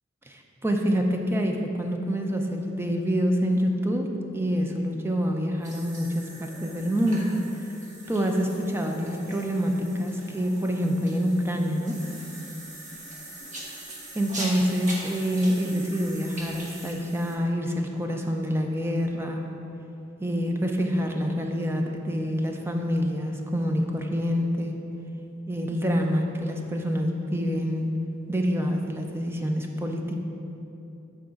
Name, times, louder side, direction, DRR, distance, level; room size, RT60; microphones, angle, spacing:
voice 1, 0.3-7.4 8.1-12.0 14.1-19.4 20.2-24.8 25.5-27.9 28.3-30.2, equal, 15° right, 2 dB, 0.5 m, -26 dB
sound 1, 5.6-17.4, right 1 dB, 40° right, 1.1 m, -41 dB
6.3 x 4.7 x 5.8 m, 2.9 s
head